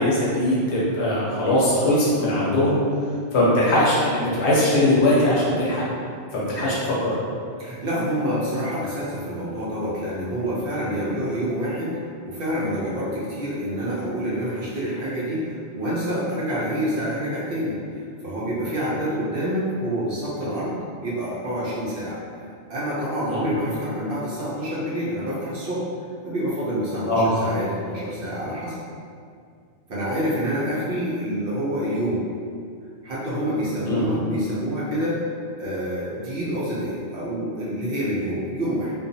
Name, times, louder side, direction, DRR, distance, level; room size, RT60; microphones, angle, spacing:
voice 1, 0.0-2.8 3.3-5.8 6.3-7.1 23.3-23.4 27.1-27.3 33.9-34.0, left 1 dB, 70° left, -7 dB, 1.0 m, -20 dB
voice 2, 7.6-12.0 12.2-22.2 22.7-25.9 26.2-28.8 29.9-32.2 33.0-35.2 35.6-38.9, equal, 60° right, -8 dB, 0.7 m, -27 dB
2.5 x 2.3 x 2.6 m, 2.3 s
omnidirectional pair, 1.2 m